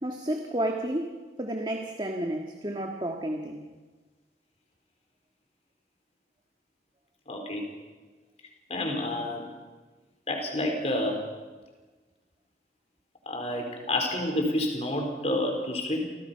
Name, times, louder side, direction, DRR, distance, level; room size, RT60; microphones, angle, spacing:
voice 1, 0.0-3.6, right 1 dB, 25° right, 3 dB, 1.8 m, -31 dB
voice 2, 7.3-7.7 8.7-9.4 10.3-11.2 13.3-16.0, left 1 dB, 35° left, 3 dB, 4.5 m, -29 dB
30.0 x 23.5 x 5.8 m, 1.3 s
head